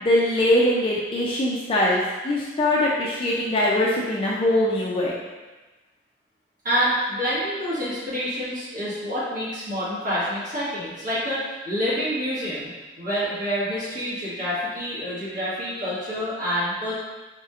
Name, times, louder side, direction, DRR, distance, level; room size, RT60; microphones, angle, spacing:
voice 1, 0.0-5.1, left 1 dB, 30° left, -5 dB, 0.4 m, -22 dB
voice 2, 6.6-12.7 13.0-16.9, equal, 45° right, -10 dB, 1.4 m, -27 dB
4.0 x 2.9 x 2.4 m, 1.2 s
head